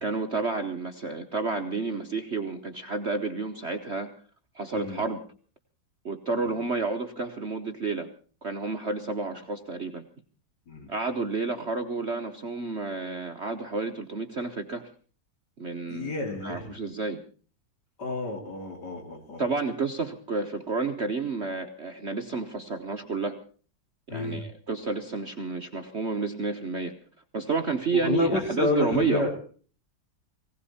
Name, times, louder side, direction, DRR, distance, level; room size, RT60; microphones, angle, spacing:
voice 1, 0.0-4.1 4.5-5.2 6.0-8.1 8.4-10.0 10.9-14.9 15.6-16.1 16.4-17.2 19.4-23.4 24.1-26.9 27.3-29.2, right 4 dB, 45° right, 5 dB, 1.0 m, -30 dB
voice 2, 4.7-5.0 6.4-6.6 10.7-10.9 15.9-16.8 18.0-19.5 24.1-24.5 27.9-29.4, left 3 dB, 55° left, 4 dB, 3.2 m, -29 dB
19.0 x 17.5 x 4.2 m, 0.41 s
omnidirectional pair, 2.1 m